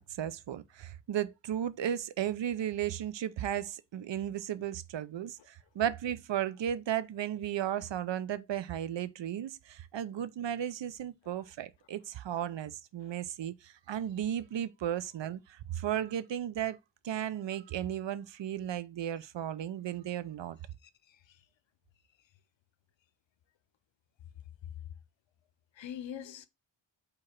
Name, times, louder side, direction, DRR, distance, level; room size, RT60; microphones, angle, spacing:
voice 1, 0.0-16.8 17.0-20.6, right 10 dB, 65° right, 0.5 m, -35 dB
voice 2, 20.8-21.4 25.8-26.5, left 9 dB, 70° left, 0.6 m, -44 dB
4.7 x 2.5 x 4.2 m
wide cardioid pair, 90°, 47 cm